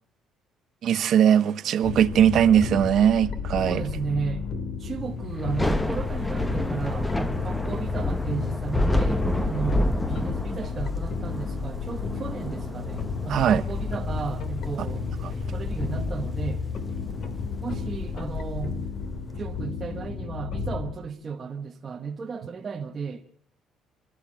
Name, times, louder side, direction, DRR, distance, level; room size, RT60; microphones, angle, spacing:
voice 1, 0.8-3.8 13.3-13.6 15.2-15.3, right 9 dB, 50° right, 1.0 m, -20 dB
sound 1, 1.8-20.9, left 5 dB, 50° left, 2.7 m, -32 dB
voice 2, 3.6-4.4 4.8-15.1 15.5-16.6 17.6-18.8 19.3-23.2, right 5 dB, 25° right, 1.2 m, -34 dB
Thunder / Rain, 5.4-18.6, left 1 dB, 5° left, 1.1 m, -30 dB
30.0 x 13.0 x 7.5 m
cardioid pair, 160°, 0 cm